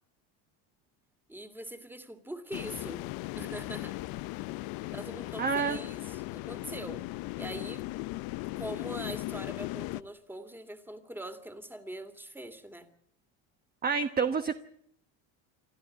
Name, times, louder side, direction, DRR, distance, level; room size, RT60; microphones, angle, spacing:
voice 1, 1.3-3.0 3.3-4.0 4.9-7.0 7.4-7.9 8.6-12.9, right 1 dB, 5° right, 10 dB, 2.7 m, -42 dB
sound 1, 2.5-10.0, left 19 dB, 70° left, 0.8 m, -38 dB
voice 2, 5.4-5.8 13.8-14.6, right 5 dB, 25° right, 8 dB, 1.2 m, -28 dB
28.5 x 12.0 x 9.6 m, 0.70 s
supercardioid pair, 110°, 37 cm